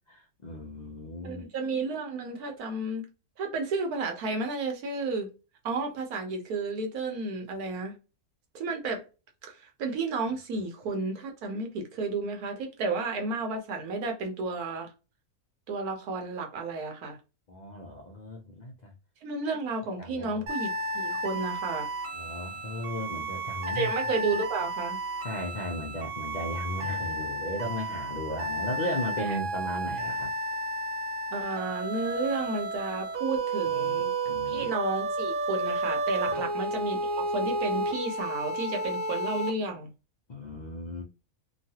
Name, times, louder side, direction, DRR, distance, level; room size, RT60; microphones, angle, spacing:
voice 1, 0.0-1.4 10.5-10.6 17.5-18.9 20.0-20.4 22.1-23.9 25.2-30.3 33.8-34.7 36.3-36.4 40.3-41.0, left 1 dB, 75° left, 0.4 m, -36 dB
voice 2, 1.2-3.0 3.4-5.3 5.6-7.9 8.5-9.0 9.4-14.9 15.7-17.2 19.2-21.9 23.7-25.0 29.2-29.4 31.3-34.1 34.5-39.9, right 3 dB, 85° right, 1.3 m, -32 dB
sound 1, 20.5-39.5, right 2 dB, 65° right, 1.0 m, -32 dB
3.1 x 2.3 x 2.7 m
omnidirectional pair, 1.5 m